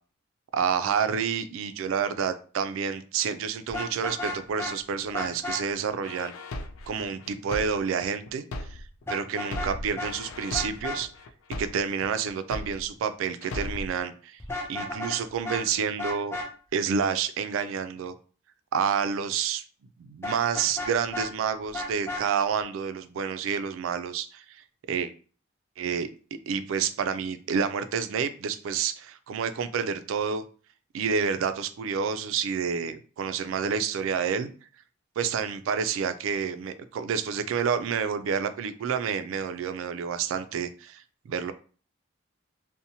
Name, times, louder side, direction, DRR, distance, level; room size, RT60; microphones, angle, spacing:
voice 1, 0.5-6.3 6.9-8.8 9.1-11.1 11.6-14.4 14.7-16.4 16.7-18.1 18.7-19.6 20.0-24.4 24.9-25.1 25.8-26.1 26.5-30.4 30.9-34.5 35.2-41.5, right 6 dB, 75° right, 12 dB, 0.3 m, -29 dB
Vehicle horn car horn honking, 3.7-4.7 5.1-5.6 9.1-9.7 10.0-10.1 10.5-11.0 14.4-15.2 15.4-15.6 16.0-16.5 20.2-21.3 21.7-22.2, left 2 dB, 10° left, 0.4 m, -33 dB
sound 1, 6.0-9.0 9.4-13.0 13.4-14.0, left 2 dB, 85° left, 0.3 m, -37 dB
2.7 x 2.1 x 2.7 m, 0.39 s
head